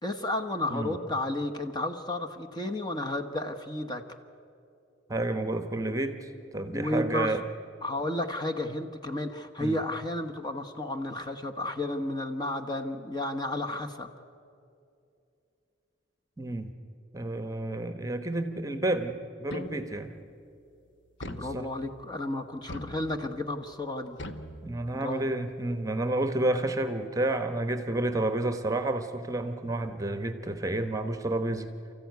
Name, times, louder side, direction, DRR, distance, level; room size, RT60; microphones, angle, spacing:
voice 1, 0.0-4.0 6.7-7.3 7.8-14.1 21.2-24.2 24.9-25.3, left 1 dB, 20° left, 4 dB, 1.1 m, -32 dB
voice 2, 5.1-7.4 9.6-9.8 16.4-16.7 17.1-20.1 21.5-21.7 24.6-31.7, right 2 dB, 15° right, 9 dB, 1.1 m, -30 dB
sound 1, 19.5-20.2 21.2-22.1 22.7-23.5 24.2-25.2, left 1 dB, 65° left, 1.2 m, -42 dB
29.0 x 14.5 x 9.4 m, 2.6 s
head